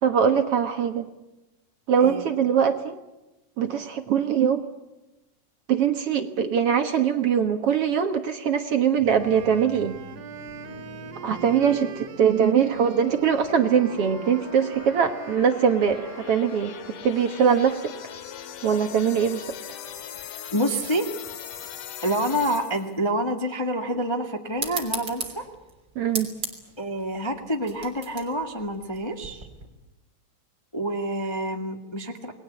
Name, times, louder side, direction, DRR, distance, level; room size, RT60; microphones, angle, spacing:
voice 1, 0.0-1.1 1.9-3.0 3.6-4.6 5.7-10.0 11.2-16.7 17.0-17.9 18.6-19.5 26.0-26.3, right 7 dB, 55° right, 7 dB, 2.0 m, -22 dB
voice 2, 2.0-2.3 20.5-21.1 22.0-25.4 26.8-29.5 30.7-32.3, right 1 dB, 15° left, 3 dB, 1.2 m, -27 dB
sound 1, 9.0-23.0, left 8 dB, 90° left, 3.2 m, -41 dB
Wind instrument woodwind instrument, 9.2-17.3, right 9 dB, 85° right, 3.2 m, -43 dB
sound 2, 24.6-29.7, right 4 dB, 35° right, 3.8 m, -36 dB
28.5 x 20.5 x 8.4 m, 1.0 s
omnidirectional pair, 3.6 m